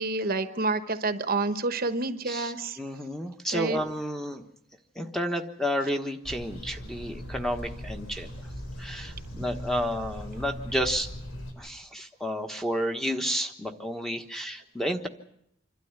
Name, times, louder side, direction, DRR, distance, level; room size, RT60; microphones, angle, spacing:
voice 1, 0.0-2.8 3.5-3.8, right 3 dB, 45° right, 10 dB, 1.0 m, -28 dB
voice 2, 2.8-4.4 4.9-8.3 8.8-11.1 11.6-15.1, equal, ahead, 5 dB, 1.3 m, -31 dB
sound 1, 6.2-11.5, equal, 80° left, 4.0 m, -39 dB
26.5 x 12.5 x 9.6 m, 0.76 s
head